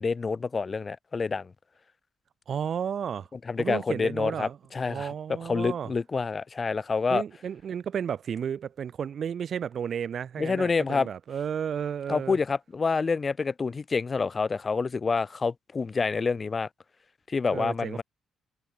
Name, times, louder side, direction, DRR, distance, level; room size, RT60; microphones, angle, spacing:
voice 1, 0.0-1.5 3.5-7.2 10.4-11.1 12.1-16.7 17.3-18.0, left 4 dB, 35° left, 2.6 m, -28 dB
voice 2, 2.5-3.3 3.6-4.6 4.9-5.9 7.1-12.4 17.5-18.0, right 8 dB, 55° right, 0.9 m, -32 dB
cardioid pair, 90°, 0 cm